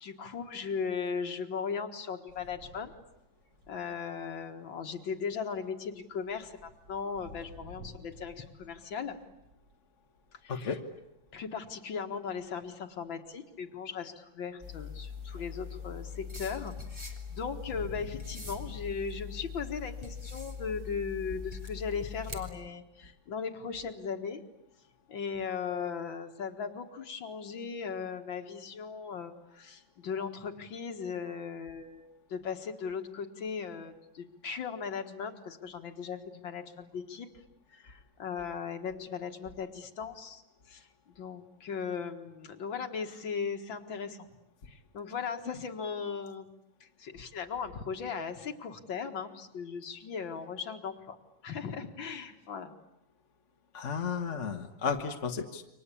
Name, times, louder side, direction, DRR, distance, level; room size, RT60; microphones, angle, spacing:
voice 1, 0.0-2.9 3.7-9.2 10.3-10.8 11.3-24.4 25.1-37.3 37.7-40.4 40.7-44.3 44.7-46.5 46.8-51.2 51.4-52.7, left 6 dB, 80° left, 5 dB, 2.4 m, -38 dB
sound 1, 2.3-9.8 10.2-11.7 12.4-12.7 13.0-13.1 13.3-13.4 14.7-14.8 15.1-21.7, equal, 50° right, 3.6 m, -53 dB
voice 2, 10.5-10.8 53.7-55.6, left 6 dB, 40° left, 4 dB, 1.6 m, -33 dB
sound 2, 14.6-22.5, left 5 dB, 15° right, 3.5 m, -42 dB
28.5 x 24.5 x 8.5 m, 0.90 s
omnidirectional pair, 2.1 m